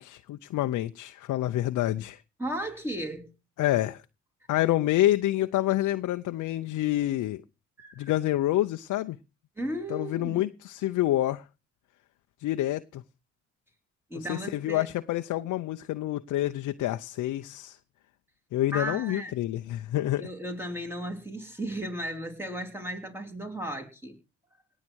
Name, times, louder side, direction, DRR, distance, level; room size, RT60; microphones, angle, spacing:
voice 1, 0.0-2.2 3.6-4.0 4.5-7.4 8.0-9.2 9.9-11.4 12.4-13.0 14.3-17.8 18.5-20.2, left 14 dB, 75° left, 0.7 m, -27 dB
voice 2, 2.4-3.3 7.8-8.1 9.6-10.4 14.1-14.9 18.7-19.3 20.2-24.2, right 1 dB, 10° right, 3.4 m, -35 dB
18.0 x 7.5 x 4.6 m
cardioid pair, 90°, 30 cm